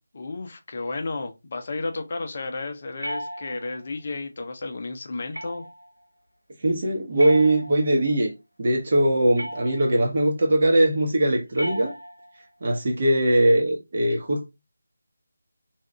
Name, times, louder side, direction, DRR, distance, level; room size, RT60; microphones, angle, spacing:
voice 1, 0.1-5.6, left 3 dB, 40° left, 0.5 m, -32 dB
sound 1, 3.0-3.9 5.3-5.9 7.2-8.1 9.4-10.1 11.5-12.4, equal, 90° right, 0.8 m, -36 dB
voice 2, 6.6-8.3 8.6-11.9 12.6-14.5, right 1 dB, 45° right, 0.9 m, -21 dB
2.7 x 2.4 x 3.2 m
figure-of-eight pair, 160°, 0 cm